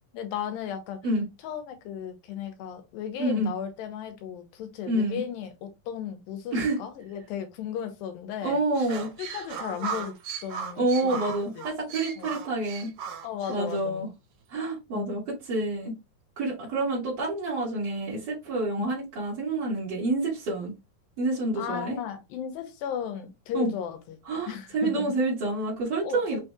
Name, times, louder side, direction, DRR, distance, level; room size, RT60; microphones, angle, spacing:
voice 1, 0.1-1.0 1.4-8.6 9.2-10.9 11.6-11.7 12.2-12.3 13.2-14.0 14.9-15.3 18.8-18.9 21.6-24.2 24.5-25.1 26.0-26.4, left 8 dB, 85° left, 2.5 m, -35 dB
voice 2, 3.2-3.5 4.9-5.2 6.5-6.8 8.4-9.1 10.8-12.9 13.5-14.1 14.5-15.9 16.4-20.7 21.2-22.0 23.5-23.7 24.2-26.4, right 2 dB, 45° right, 1.4 m, -28 dB
sound 1, 8.7-13.8, right 6 dB, 80° right, 1.6 m, -37 dB
5.8 x 2.7 x 2.2 m
omnidirectional pair, 4.1 m